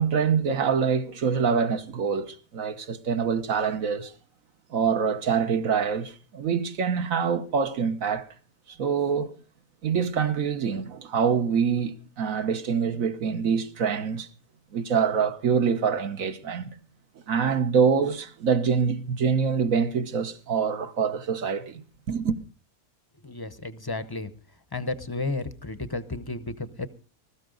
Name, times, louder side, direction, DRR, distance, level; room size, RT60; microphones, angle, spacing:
voice 1, 0.0-4.1 4.7-8.3 8.7-9.3 9.8-14.3 14.7-16.7 17.3-22.4, right 6 dB, 70° right, 1.5 m, -25 dB
voice 2, 23.2-24.3 24.7-26.9, left 3 dB, 20° left, 0.7 m, -32 dB
20.5 x 13.5 x 3.9 m
omnidirectional pair, 1.5 m